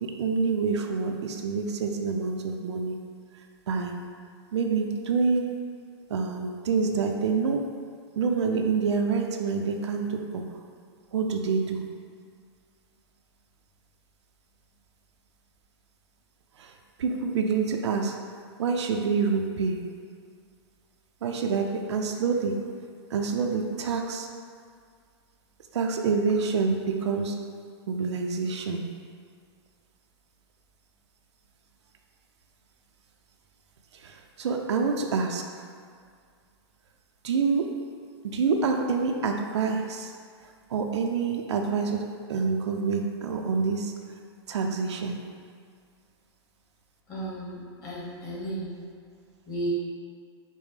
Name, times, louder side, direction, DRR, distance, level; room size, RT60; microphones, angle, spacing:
voice 1, 0.0-3.0 3.7-3.9 4.5-5.5 6.1-7.6 8.2-10.4 11.1-11.8 16.6-16.7 17.0-18.2 18.6-19.8 21.2-22.6 23.1-24.3 25.7-27.3 27.9-28.8 34.0-35.4 37.2-37.7 38.2-40.1 40.7-43.9 44.5-45.2, right 5 dB, 85° right, 3 dB, 0.5 m, -27 dB
voice 2, 47.1-48.8 49.5-49.7, right 1 dB, 20° left, -9 dB, 1.2 m, -34 dB
5.3 x 2.1 x 4.8 m, 2.1 s
hypercardioid pair, 165°, 14 cm